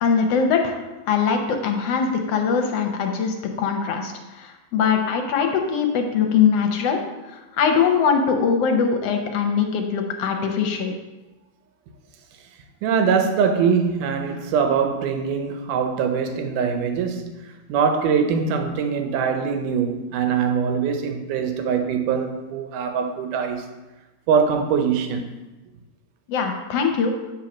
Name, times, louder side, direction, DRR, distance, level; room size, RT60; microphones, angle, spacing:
voice 1, 0.0-7.0 7.3-10.9 26.3-27.1, left 6 dB, 70° left, 1.6 m, -22 dB
voice 2, 12.8-17.3 17.7-23.7 24.3-25.3, right 6 dB, 85° right, 2.4 m, -22 dB
9.0 x 4.7 x 6.0 m
omnidirectional pair, 3.5 m